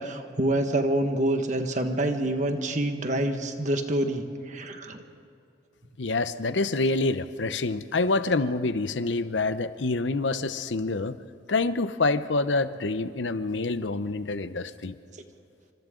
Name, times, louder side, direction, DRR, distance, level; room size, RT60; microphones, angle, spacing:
voice 1, 0.0-5.0, right 1 dB, 40° right, 5 dB, 1.6 m, -27 dB
voice 2, 6.0-11.2 11.5-14.9, left 3 dB, 85° left, 12 dB, 0.8 m, -27 dB
29.0 x 25.5 x 3.9 m, 2.6 s
head